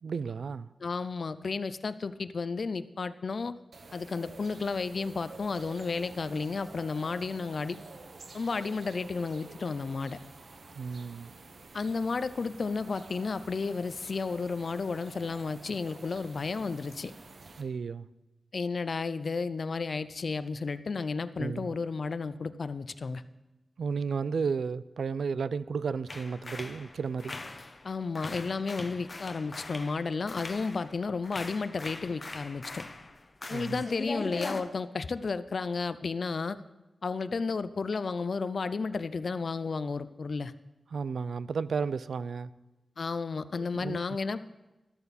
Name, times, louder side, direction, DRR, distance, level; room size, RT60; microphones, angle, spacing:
voice 1, 0.0-0.7 10.8-11.3 17.6-18.1 21.4-21.7 23.8-27.4 33.4-33.8 40.9-42.5 43.6-44.0, right 5 dB, 80° right, 0.4 m, -33 dB
voice 2, 0.8-3.5 3.9-7.8 8.3-10.2 11.7-17.1 18.5-23.2 27.8-32.8 33.5-36.6 37.0-40.5 43.0-44.4, left 4 dB, 55° left, 0.5 m, -32 dB
sound 1, 3.7-17.6, right 3 dB, 60° right, 1.2 m, -50 dB
sound 2, 26.1-27.9 28.2-31.0 31.2-34.6, left 2 dB, 35° left, 0.9 m, -41 dB
13.5 x 12.5 x 4.2 m
wide cardioid pair, 150°, 0 cm